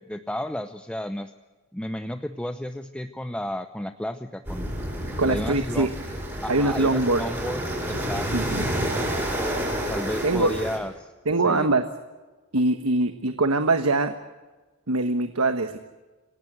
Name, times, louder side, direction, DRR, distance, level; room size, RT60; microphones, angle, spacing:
voice 1, 0.0-1.3 1.7-4.7 5.2-5.9 6.4-8.3 9.9-11.1 11.4-11.7, left 1 dB, 5° left, 8 dB, 0.7 m, -32 dB
sound 1, 4.5-10.8, equal, 10° right, 7.1 m, -29 dB
voice 2, 5.2-5.9 6.5-7.2 8.3-8.7 10.2-10.5 11.3-11.9 12.5-14.1 14.9-15.8, right 2 dB, 75° right, 8 dB, 1.3 m, -23 dB
27.0 x 18.5 x 7.9 m, 1.2 s
head